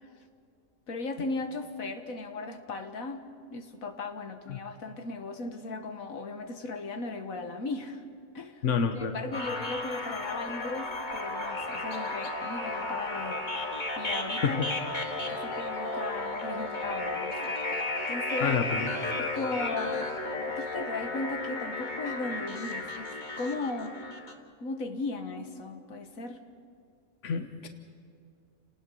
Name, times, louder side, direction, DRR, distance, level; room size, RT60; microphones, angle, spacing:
voice 1, 0.9-3.3 3.5-8.0 8.3-8.7 8.9-14.9 15.3-18.6 19.2-20.1 20.5-23.1 23.4-24.0 24.6-26.4, left 3 dB, 80° left, 6 dB, 1.8 m, -37 dB
voice 2, 8.6-9.1 14.4-14.7 18.4-18.9 27.2-27.7, left 6 dB, 65° left, 6 dB, 1.5 m, -28 dB
sound 1, 9.3-24.3, left 2 dB, 35° left, 1.8 m, -34 dB
30.0 x 19.0 x 5.5 m, 2.5 s
omnidirectional pair, 1.4 m